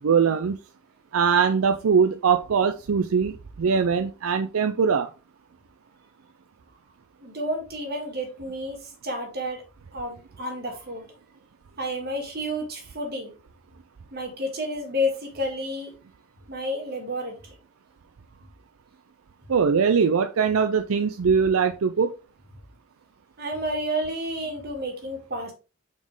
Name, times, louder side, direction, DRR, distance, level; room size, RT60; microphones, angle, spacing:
voice 1, 0.0-0.6 1.1-5.1 19.5-22.1, right 6 dB, 80° right, 0.5 m, -21 dB
voice 2, 7.2-9.6 9.9-11.1 11.8-13.3 14.1-15.9 16.5-17.4 23.4-25.5, equal, 50° right, 2.0 m, -30 dB
6.0 x 4.4 x 3.6 m
head